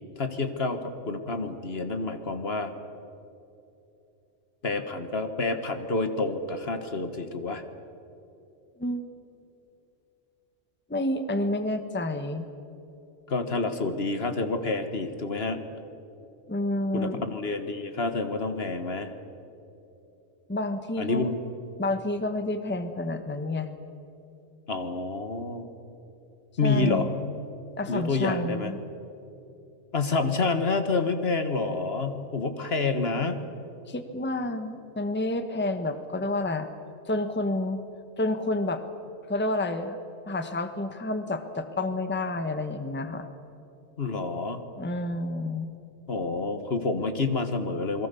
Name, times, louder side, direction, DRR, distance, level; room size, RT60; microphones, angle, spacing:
voice 1, 0.2-2.7 4.6-7.6 13.3-15.6 16.9-19.1 21.0-21.4 24.7-25.7 26.6-27.1 27.9-28.7 29.9-33.4 44.0-44.6 46.1-48.1, left 3 dB, 55° left, 8 dB, 1.7 m, -28 dB
voice 2, 10.9-12.5 16.5-17.2 20.5-21.3 21.8-23.7 26.6-27.1 27.8-28.8 33.9-36.7 37.1-37.8 38.2-38.8 39.3-40.0 40.3-43.3 44.8-45.7, left 2 dB, 10° left, 8 dB, 1.1 m, -29 dB
28.5 x 21.5 x 7.0 m, 2.8 s
omnidirectional pair, 1.3 m